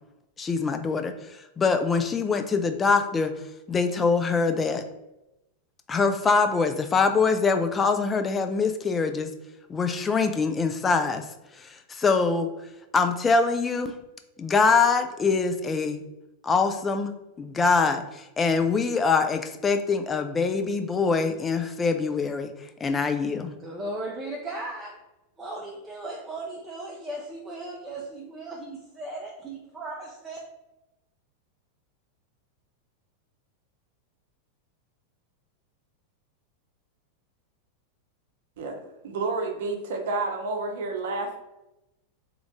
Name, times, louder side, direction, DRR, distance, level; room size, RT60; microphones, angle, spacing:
voice 1, 0.4-3.3 3.7-4.8 5.9-9.3 9.7-11.3 11.6-12.5 12.9-13.9 14.4-16.0 16.4-17.1 17.4-22.5 22.8-23.5, left 4 dB, 20° left, 7 dB, 0.4 m, -24 dB
voice 2, 23.6-25.0 25.4-30.4, right 2 dB, 20° right, -2 dB, 0.6 m, -36 dB
voice 3, 39.0-41.4, right 3 dB, 65° right, 3 dB, 0.7 m, -29 dB
3.0 x 2.5 x 3.6 m, 0.93 s
figure-of-eight pair, 95°, 0 cm